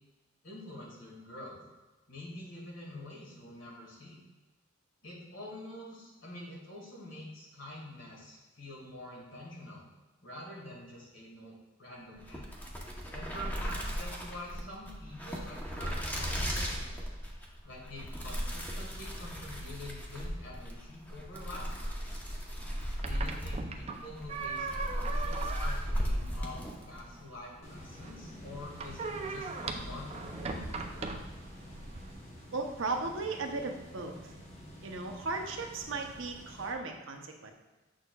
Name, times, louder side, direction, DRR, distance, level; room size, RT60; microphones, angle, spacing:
voice 1, 0.4-1.6 2.1-4.2 5.0-9.8 10.2-12.5 13.1-16.9 17.6-22.2 23.1-26.6 26.9-31.2, left 1 dB, 65° left, -3 dB, 2.0 m, -46 dB
sound 1, 12.2-27.1, equal, 10° left, 0.8 m, -36 dB
sound 2, 22.6-32.1, right 3 dB, 30° right, 0.4 m, -40 dB
sound 3, 27.6-36.7, equal, 35° left, 1.1 m, -49 dB
voice 2, 32.5-34.3 34.8-37.5, right 3 dB, 70° right, 3 dB, 0.8 m, -36 dB
7.6 x 6.3 x 2.3 m, 1.2 s
head